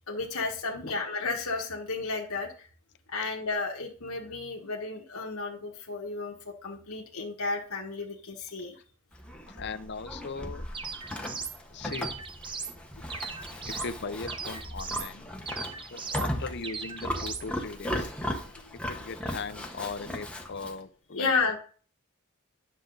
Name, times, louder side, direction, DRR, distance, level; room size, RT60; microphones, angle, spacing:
voice 1, 0.1-2.7 3.1-8.8 13.0-13.1 18.2-18.7 21.1-21.6, left 4 dB, 85° left, 0 dB, 1.4 m, -33 dB
Livestock farm animals working animals, 9.1-20.8, equal, 5° left, 1.1 m, -37 dB
voice 2, 9.5-10.7 11.7-12.1 13.6-15.3 15.8-18.1 19.0-21.3, left 4 dB, 55° left, 11 dB, 0.7 m, -39 dB
sound 1, 10.7-11.6 11.9-12.8 13.1-13.9 14.3-15.1 15.5-16.3 16.6-17.5, right 5 dB, 25° right, 0.7 m, -38 dB
10.0 x 6.6 x 4.0 m, 0.42 s
head